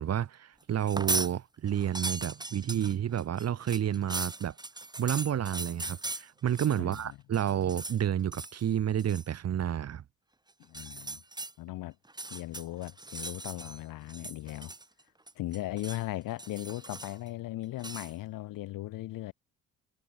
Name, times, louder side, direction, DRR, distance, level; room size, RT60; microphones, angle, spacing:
voice 1, 0.0-4.5 5.0-10.0, right 10 dB, 40° right, 1.3 m, -30 dB
sound 1, 0.8-1.3 1.7-7.0 7.3-8.0 8.3-8.6 9.0-9.3 10.6-11.5 12.0-13.8 14.1-15.0 15.3-16.0 16.4-17.3 17.8-18.1, right 2 dB, 10° right, 1.8 m, -38 dB
voice 2, 6.8-7.1 10.6-11.2 11.6-11.9 12.3-14.7 15.3-19.3, left 16 dB, 55° left, 1.4 m, -38 dB
figure-of-eight pair, 55°, 40 cm